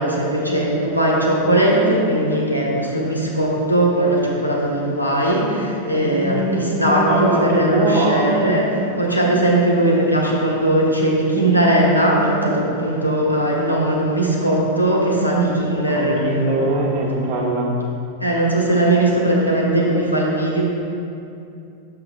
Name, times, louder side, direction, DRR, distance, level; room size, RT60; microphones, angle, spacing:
voice 1, 0.0-16.2 18.2-20.6, right 1 dB, 90° left, -3 dB, 1.1 m, -19 dB
voice 2, 5.9-8.3 16.0-17.7, right 2 dB, 50° right, -1 dB, 1.2 m, -22 dB
6.5 x 6.0 x 3.5 m, 2.6 s
figure-of-eight pair, 90°, 0 cm